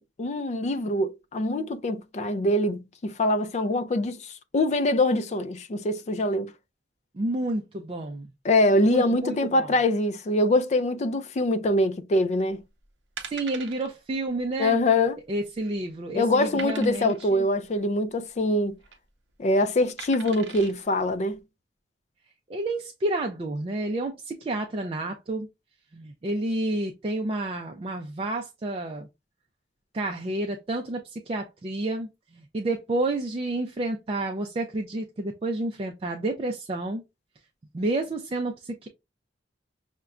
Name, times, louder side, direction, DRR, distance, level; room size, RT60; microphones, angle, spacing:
voice 1, 0.0-6.5 8.4-12.6 14.6-15.2 16.1-18.8 19.4-21.4, left 1 dB, 40° left, 0.4 m, -24 dB
voice 2, 7.1-8.3 8.9-9.7 13.3-14.8 15.3-17.4 22.5-25.5 25.9-29.1 29.9-37.0 37.7-38.9, right 2 dB, 30° right, 0.4 m, -30 dB
sound 1, 12.5-12.7 13.2-13.9 14.2-14.4 14.7-14.8 15.3-15.8 16.6-17.3 18.6-19.0 20.0-20.7 21.3-21.4, right 7 dB, 75° right, 0.6 m, -41 dB
5.7 x 2.2 x 2.4 m
head